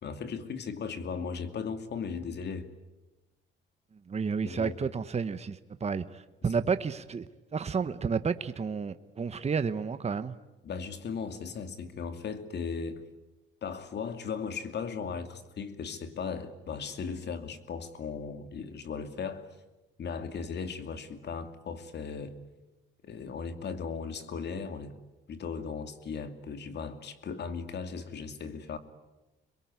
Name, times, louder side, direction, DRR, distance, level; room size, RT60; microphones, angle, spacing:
voice 1, 0.0-2.7 4.4-4.7 10.6-13.0 13.6-19.5 20.0-22.4 23.0-24.9 25.3-28.8, left 5 dB, 60° left, 2.6 m, -37 dB
voice 2, 4.1-7.3 7.5-10.3, right 5 dB, 35° right, 1.1 m, -31 dB
26.5 x 22.0 x 9.6 m
cardioid pair, 90°, 20 cm